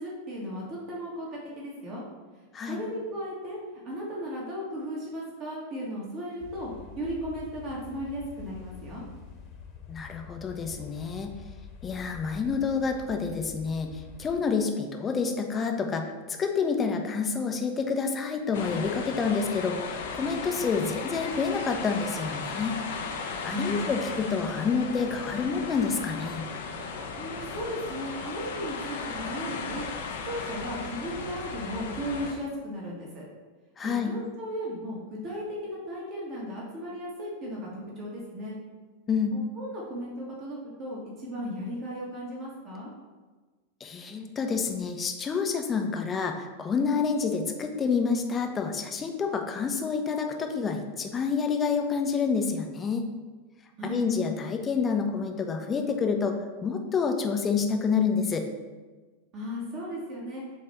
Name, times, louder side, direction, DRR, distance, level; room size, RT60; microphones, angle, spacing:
voice 1, 0.0-2.0 2.6-3.6 3.8-9.0 23.5-23.9 27.1-29.8 30.2-33.2 33.8-38.6 39.3-42.9 53.8-54.1 59.3-60.4, equal, 35° right, -4 dB, 1.6 m, -36 dB
sound 1, 6.4-14.4, left 7 dB, 35° left, 1.3 m, -46 dB
voice 2, 9.9-11.3 11.8-22.8 23.2-26.5 33.8-34.1 39.1-39.3 43.8-53.1 53.8-58.5, left 5 dB, 20° left, 4 dB, 0.7 m, -28 dB
sound 2, 18.5-32.3, left 4 dB, 60° left, 0.7 m, -36 dB
7.6 x 3.2 x 4.2 m, 1.3 s
figure-of-eight pair, 90°, 0 cm